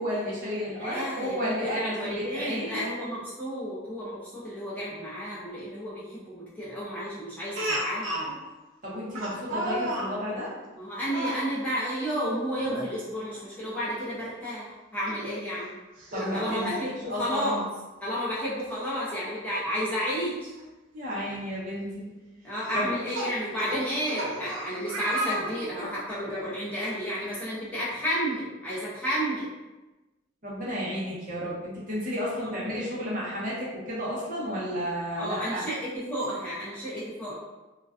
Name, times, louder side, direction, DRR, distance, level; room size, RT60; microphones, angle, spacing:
voice 1, 0.0-2.9 8.8-10.5 16.1-16.7 17.0-17.6 20.9-22.1 22.7-23.0 30.4-35.6, equal, 45° right, -7 dB, 0.7 m, -32 dB
voice 2, 0.7-8.4 10.8-15.7 16.2-17.6 18.0-20.5 22.4-29.5 32.4-32.5 35.2-37.3, equal, 10° left, -10 dB, 0.5 m, -32 dB
Speech, 7.5-8.3 9.1-10.1 11.0-11.4 12.6-12.9 13.3-13.4 15.1-15.2 16.0-16.8 18.2-18.3 18.6-18.7 20.6-20.7 21.3-21.5 22.6-26.0, right 1 dB, 80° right, 0.5 m, -33 dB
2.3 x 2.2 x 2.3 m, 1.1 s
head